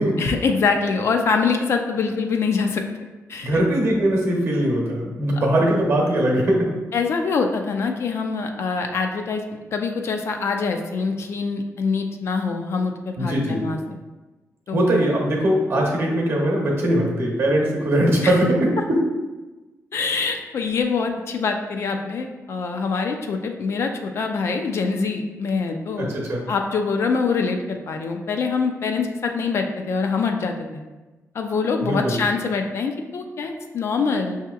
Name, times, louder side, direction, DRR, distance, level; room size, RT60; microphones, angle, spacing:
voice 1, 0.2-2.8 3.3-3.6 5.3-5.4 6.9-13.8 14.7-15.1 18.2-18.4 19.9-26.1 26.5-30.8 31.3-34.4, left 4 dB, 50° left, 4 dB, 0.3 m, -24 dB
voice 2, 3.4-6.7 13.2-13.7 14.7-19.0 26.0-26.5 31.8-32.2, right 1 dB, 50° right, -1 dB, 0.8 m, -21 dB
5.7 x 2.8 x 2.3 m, 1.2 s
wide cardioid pair, 170°, 6 cm